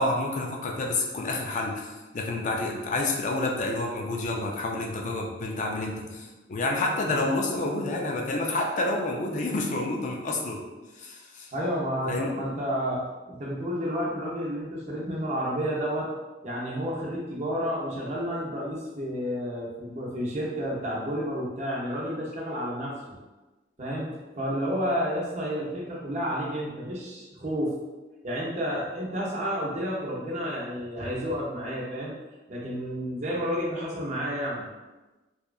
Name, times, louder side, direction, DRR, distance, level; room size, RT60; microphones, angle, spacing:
voice 1, 0.0-10.6 11.0-11.5 12.1-12.3, left 2 dB, 40° left, 1 dB, 0.4 m, -29 dB
voice 2, 11.5-16.1 16.4-23.2 23.8-27.8 28.2-32.1 32.5-34.6, equal, 40° right, -5 dB, 0.6 m, -31 dB
2.8 x 2.3 x 2.3 m, 1.1 s
head